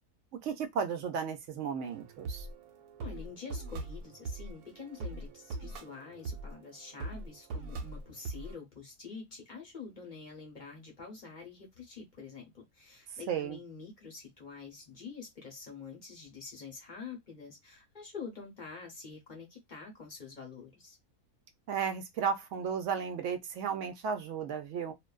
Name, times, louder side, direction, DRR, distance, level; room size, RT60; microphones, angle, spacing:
voice 1, 0.4-2.5 13.3-13.6 21.7-24.9, right 7 dB, 65° right, 0.8 m, -34 dB
sound 1, 1.8-8.5, right 3 dB, 90° right, 1.1 m, -42 dB
voice 2, 3.0-21.0, left 5 dB, 40° left, 0.7 m, -47 dB
2.5 x 2.2 x 2.2 m
omnidirectional pair, 1.6 m